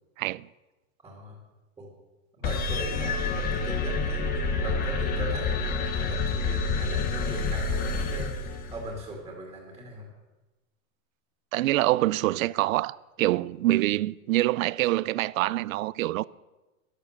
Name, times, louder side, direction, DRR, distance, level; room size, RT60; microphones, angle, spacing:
voice 1, 1.0-1.4 1.8-1.9 2.4-10.1, right 2 dB, 10° right, 2.2 m, -39 dB
sound 1, 2.4-9.0, left 4 dB, 20° left, 0.8 m, -28 dB
voice 2, 11.5-16.2, right 17 dB, 75° right, 0.6 m, -25 dB
12.5 x 11.0 x 6.6 m
supercardioid pair, 160°, 41 cm